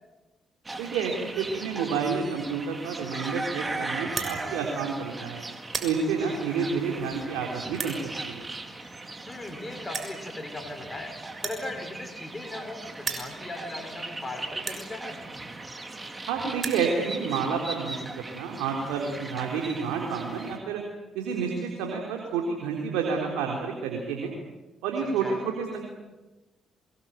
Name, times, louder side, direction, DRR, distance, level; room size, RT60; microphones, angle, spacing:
sound 1, 0.6-20.6, right 2 dB, 25° right, 4.0 m, -39 dB
voice 1, 0.8-5.4 5.8-8.0 8.2-8.5 16.3-20.8 21.1-24.3 24.8-25.8, right 5 dB, 85° right, 1 dB, 3.8 m, -29 dB
sound 2, 4.1-4.3 5.0-5.2 5.5-5.9 6.7-6.8 7.7-8.0 9.0-9.1 9.3-9.4 9.9-10.2 11.3-12.7 12.9-13.3 14.0-14.1 14.6-14.8 15.8-15.9 16.1-16.2 16.4-16.8, right 5 dB, 45° right, 6.4 m, -34 dB
voice 2, 9.3-11.1 11.4-15.2 25.0-25.4, left 2 dB, 25° left, 3 dB, 5.3 m, -38 dB
25.0 x 21.5 x 9.2 m, 1.1 s
supercardioid pair, 55°, 0 cm